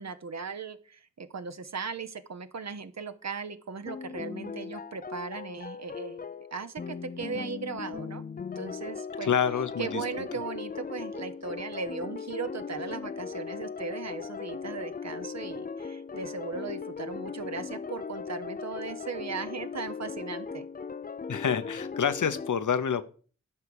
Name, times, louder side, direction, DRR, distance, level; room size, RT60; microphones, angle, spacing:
voice 1, 0.0-8.2 8.5-9.3 9.8-20.7, right 5 dB, 60° right, 10 dB, 0.9 m, -38 dB
sound 1, 3.9-22.5, left 5 dB, 30° left, 0.4 m, -38 dB
voice 2, 9.3-10.0 21.3-23.0, left 7 dB, 80° left, 12 dB, 0.9 m, -27 dB
12.0 x 4.8 x 6.9 m, 0.41 s
wide cardioid pair, 90°, 30 cm